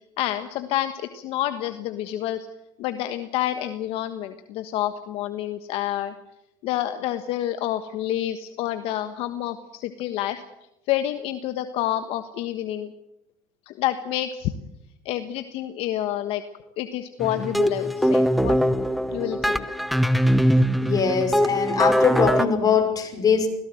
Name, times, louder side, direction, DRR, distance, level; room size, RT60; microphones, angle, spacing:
voice 1, 0.2-2.5 2.8-6.1 6.6-10.4 10.9-12.9 13.7-14.5 15.0-16.4 16.8-18.6 19.1-19.6, left 12 dB, 70° left, 9 dB, 1.4 m, -28 dB
sound 1, 17.2-22.5, equal, ahead, 1.0 m, -22 dB
voice 2, 20.8-23.5, left 6 dB, 35° left, 5 dB, 5.5 m, -21 dB
20.5 x 17.0 x 7.8 m, 0.88 s
supercardioid pair, 90°, 10 cm